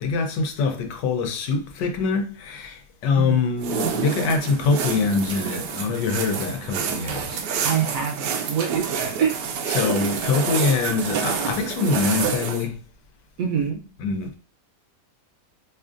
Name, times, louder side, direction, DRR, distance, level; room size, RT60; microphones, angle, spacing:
voice 1, 0.0-7.4 9.7-12.7 14.0-14.4, left 4 dB, 85° left, 1.3 m, -24 dB
sound 1, 3.6-12.7, right 6 dB, 85° right, 1.2 m, -28 dB
voice 2, 7.6-9.4 13.4-13.8, right 7 dB, 65° right, 0.9 m, -25 dB
4.8 x 2.5 x 2.5 m
omnidirectional pair, 1.8 m